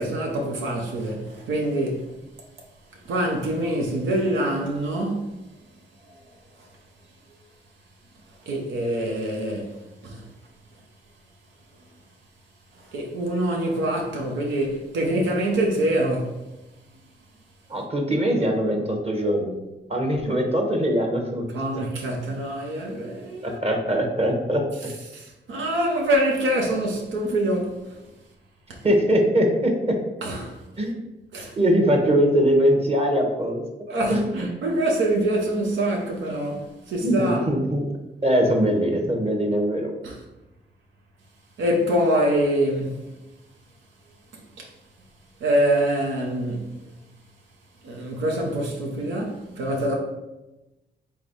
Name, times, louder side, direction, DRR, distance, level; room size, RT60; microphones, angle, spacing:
voice 1, 0.0-2.1 3.0-5.3 8.5-9.8 10.0-10.2 12.9-16.4 21.5-23.6 25.1-28.0 28.7-28.8 30.2-30.6 31.3-31.5 33.9-37.5 40.0-40.2 41.6-43.0 44.6-44.7 45.4-46.8 47.8-50.0, right 1 dB, 90° right, 0.7 m, -25 dB
voice 2, 17.7-19.6 19.9-21.4 23.4-24.6 28.8-29.7 30.8-31.0 31.6-33.6 34.1-34.5 37.0-37.9 38.2-39.9, equal, 30° right, 1.1 m, -22 dB
3.5 x 3.3 x 4.0 m
cardioid pair, 60°, 19 cm